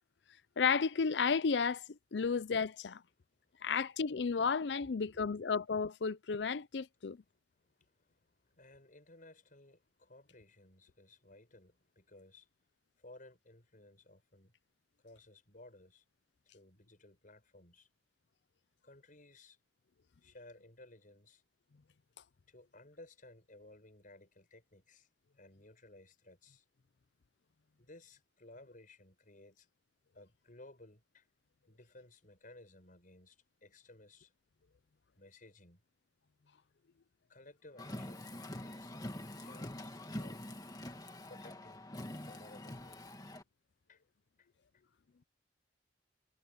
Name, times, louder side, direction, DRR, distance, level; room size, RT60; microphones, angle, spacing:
voice 1, 0.6-3.0 3.6-7.2, left 5 dB, 65° left, 0.5 m, -33 dB
voice 2, 3.4-3.7 4.8-5.4 7.2-7.3 7.6-12.5 13.0-14.5 15.0-16.0 16.5-17.9 18.8-19.6 20.2-21.4 22.5-25.1 25.3-26.7 27.8-29.7 30.1-31.3 31.7-34.3 35.2-35.8 37.3-39.9 40.2-40.5 41.3-41.9 42.3-43.2 43.9-44.0 44.4-44.5, left 2 dB, 50° left, 6.1 m, -58 dB
Car, 37.8-43.4, left 1 dB, 20° left, 2.4 m, -45 dB
head